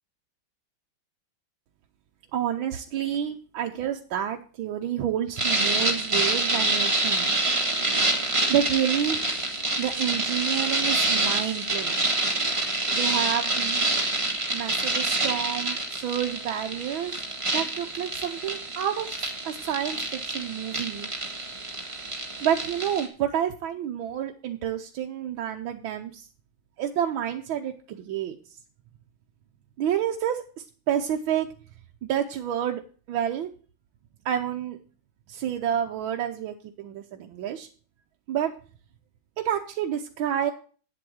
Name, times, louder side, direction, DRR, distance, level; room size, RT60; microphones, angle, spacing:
voice 1, 2.3-7.3 7.8-8.2 8.5-9.2 9.8-12.1 12.9-13.9 14.5-17.2 17.5-21.1 22.4-26.3 26.8-28.4 29.8-31.5 32.0-32.8 33.1-33.5 34.2-34.8 35.3-37.7 38.3-38.5 39.4-40.5, right 10 dB, 80° right, 2 dB, 1.6 m, -29 dB
sound 1, 5.4-23.1, right 2 dB, 15° right, 1.6 m, -27 dB
9.1 x 7.8 x 6.2 m, 0.39 s
omnidirectional pair, 2.2 m